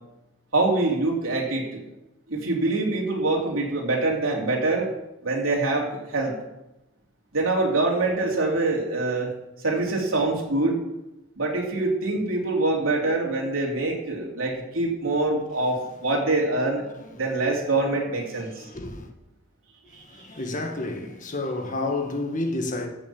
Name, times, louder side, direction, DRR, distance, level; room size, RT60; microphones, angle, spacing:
voice 1, 0.5-1.8 2.3-4.9 5.2-6.3 7.3-9.3 9.6-10.8 11.4-16.8 17.1-18.6, right 2 dB, 90° right, 3.1 m, -24 dB
voice 2, 17.0-17.3 18.4-19.1 19.9-22.9, left 2 dB, 40° left, 1.6 m, -31 dB
14.5 x 6.3 x 7.2 m
head